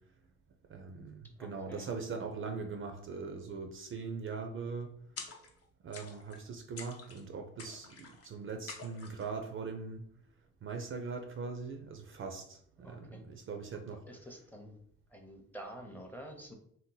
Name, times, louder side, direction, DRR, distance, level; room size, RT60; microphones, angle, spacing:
voice 1, 0.7-5.0 5.8-10.1 10.6-14.0, right 4 dB, 45° right, 0.4 m, -41 dB
voice 2, 1.4-1.9 12.8-13.2 14.1-14.8 15.1-16.5, equal, 5° left, 0.6 m, -48 dB
sound 1, 5.2-5.6 5.9-6.4 6.8-7.2 7.6-8.3 8.7-9.3, left 5 dB, 50° left, 0.7 m, -47 dB
2.7 x 2.1 x 3.7 m
cardioid pair, 90°, 30 cm